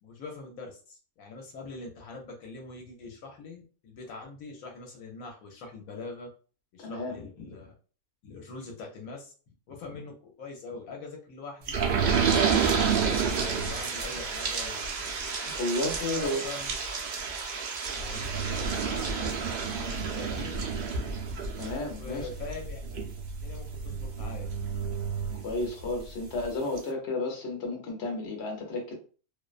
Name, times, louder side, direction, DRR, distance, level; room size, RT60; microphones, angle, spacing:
voice 1, 0.0-6.3 6.7-7.7 8.2-9.3 9.7-11.8 12.1-12.5 13.0-15.2 16.0-16.8 17.9-20.6 22.0-22.8 23.4-24.5, left 3 dB, 75° left, 1 dB, 1.0 m, -43 dB
voice 2, 6.8-7.2 15.4-16.4 21.6-22.2 25.4-28.9, left 2 dB, 55° left, 1 dB, 0.9 m, -32 dB
sound 1, 11.7-26.0 26.4-26.5 26.8-26.9, right 5 dB, 80° right, 0.4 m, -30 dB
2.5 x 2.1 x 2.3 m, 0.38 s
omnidirectional pair, 1.5 m